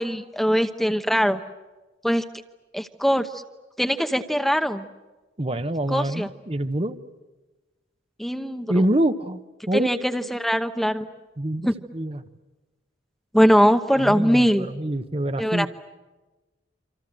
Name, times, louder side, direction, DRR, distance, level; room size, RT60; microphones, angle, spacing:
voice 1, 0.0-1.4 2.0-2.2 2.7-3.4 3.8-4.9 5.9-6.3 8.2-8.7 9.7-11.1 11.6-11.7 13.3-14.7 15.4-15.7, equal, ahead, 8 dB, 0.9 m, -21 dB
voice 2, 5.4-7.0 8.7-9.4 9.7-9.9 11.4-12.2 14.0-15.7, right 1 dB, 30° right, 10 dB, 1.1 m, -25 dB
28.0 x 26.0 x 7.6 m, 1.2 s
head